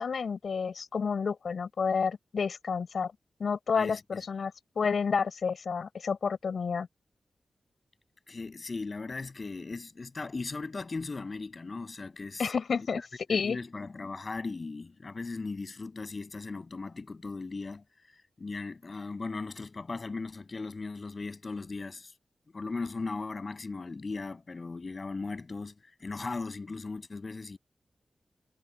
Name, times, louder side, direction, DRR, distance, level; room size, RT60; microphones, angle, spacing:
voice 1, 0.0-3.1 3.4-6.9 12.4-13.0 13.3-13.6, left 5 dB, 75° left, 5.4 m, -30 dB
voice 2, 3.7-4.2 8.3-12.5 12.9-17.8 18.4-22.1 22.5-25.7 26.0-27.6, left 3 dB, 50° left, 7.5 m, -38 dB
cardioid pair, 55°, 0 cm